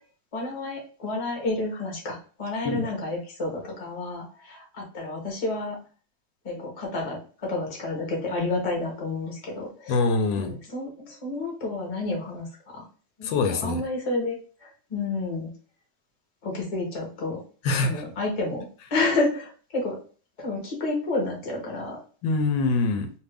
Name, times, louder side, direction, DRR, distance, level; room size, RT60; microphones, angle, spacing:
voice 1, 0.3-5.8 6.4-10.0 10.4-12.5 12.7-12.8 13.2-15.5 16.4-17.4 17.8-20.0 20.4-22.0, left 2 dB, 30° left, -1 dB, 0.8 m, -30 dB
voice 2, 9.9-10.6 13.2-13.8 17.6-18.0 22.2-23.1, left 3 dB, 85° left, 6 dB, 1.3 m, -24 dB
2.7 x 2.6 x 3.3 m, 0.41 s
omnidirectional pair, 1.9 m